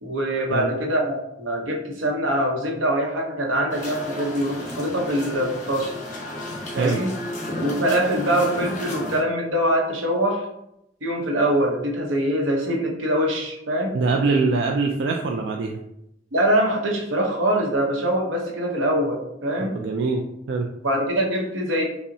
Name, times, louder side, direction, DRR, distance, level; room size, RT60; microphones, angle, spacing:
voice 1, 0.0-5.9 6.7-7.1 7.6-10.5 11.0-14.0 16.3-19.8 20.8-21.8, right 1 dB, 85° right, 1 dB, 0.8 m, -23 dB
sound 1, 3.7-9.2, left 1 dB, 40° left, 0.9 m, -33 dB
voice 2, 13.9-15.8 19.7-20.7, right 4 dB, 65° right, 1 dB, 0.3 m, -23 dB
5.3 x 2.1 x 2.6 m, 0.83 s
head